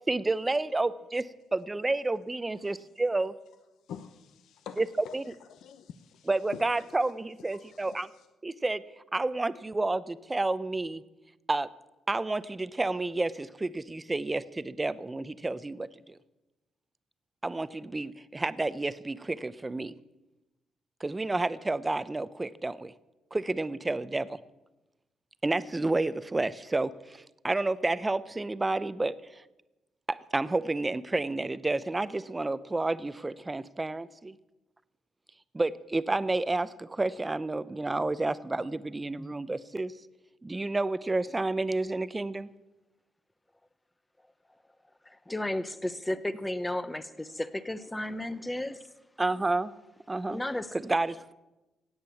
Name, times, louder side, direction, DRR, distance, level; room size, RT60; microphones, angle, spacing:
voice 1, 0.1-1.2 1.5-3.3 4.8-5.2 6.3-8.1 8.4-8.8 9.1-11.0 11.5-11.7 12.1-16.2 17.4-19.9 21.0-22.9 23.3-24.4 25.4-29.4 30.1-34.4 35.5-39.9 40.4-42.5 49.2-49.7 50.1-50.4 50.7-51.3, right 2 dB, 20° right, 16 dB, 0.6 m, -30 dB
voice 2, 3.9-5.2 5.5-6.6 7.8-8.0, left 8 dB, 75° left, 9 dB, 0.8 m, -45 dB
voice 3, 45.1-48.8 50.3-50.7, left 1 dB, 10° left, 14 dB, 0.9 m, -33 dB
16.5 x 8.9 x 7.1 m, 1.0 s
cardioid pair, 90°, 0 cm